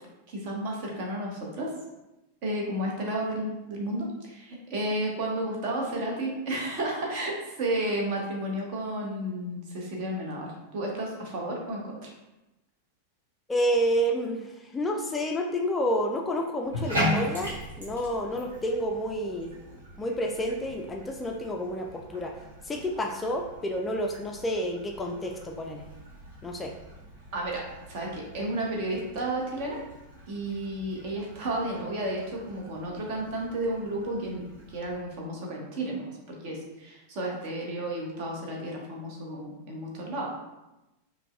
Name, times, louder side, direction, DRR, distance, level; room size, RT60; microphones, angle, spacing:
voice 1, 0.3-1.7 2.4-12.1 27.3-27.6 27.9-29.8 30.3-34.4 34.7-40.4, right 1 dB, 45° right, -1 dB, 0.9 m, -32 dB
voice 2, 13.5-19.5 20.0-22.3 22.6-25.8 26.4-26.7, equal, 15° left, 2 dB, 0.3 m, -29 dB
Bathtub (filling or washing), 16.6-35.0, equal, 65° right, 1.2 m, -39 dB
5.1 x 2.1 x 2.5 m, 0.99 s
figure-of-eight pair, 90°, 0 cm